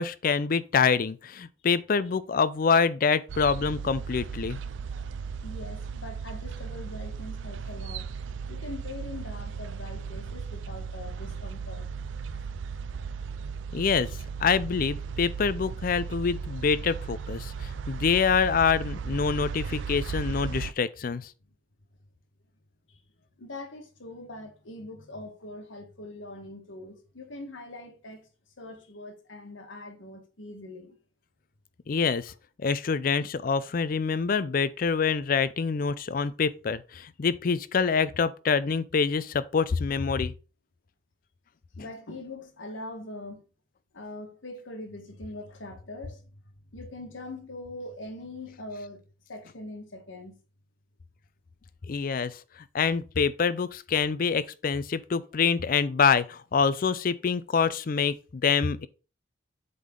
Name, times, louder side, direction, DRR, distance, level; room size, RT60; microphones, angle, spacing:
voice 1, 0.0-4.6 13.7-14.1 14.4-17.5 17.9-21.3 31.9-32.3 32.6-40.3 51.9-52.4 52.7-58.9, left 5 dB, 45° left, 0.4 m, -26 dB
sound 1, 3.3-20.7, right 6 dB, 75° right, 0.4 m, -36 dB
voice 2, 5.4-8.0 8.5-11.9 13.4-13.6 22.9-23.0 23.4-28.3 28.6-31.0 41.8-43.4 43.9-46.4 46.7-49.0 49.3-50.4, left 2 dB, 85° left, 1.5 m, -42 dB
7.7 x 3.7 x 3.7 m
head